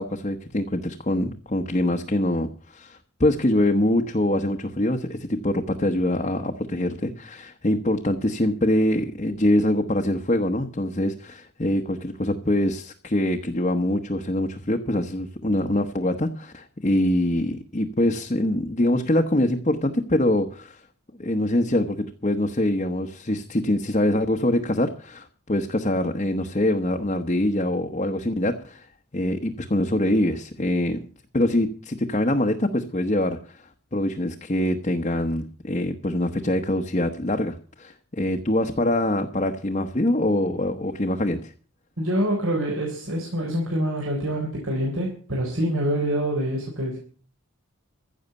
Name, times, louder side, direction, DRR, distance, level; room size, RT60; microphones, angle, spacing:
voice 1, 0.0-20.8 21.2-28.9 29.1-31.0 31.3-41.5, left 1 dB, 30° left, 3 dB, 1.0 m, -24 dB
voice 2, 42.0-47.0, equal, 65° right, -1 dB, 4.1 m, -26 dB
15.5 x 6.5 x 9.3 m, 0.41 s
head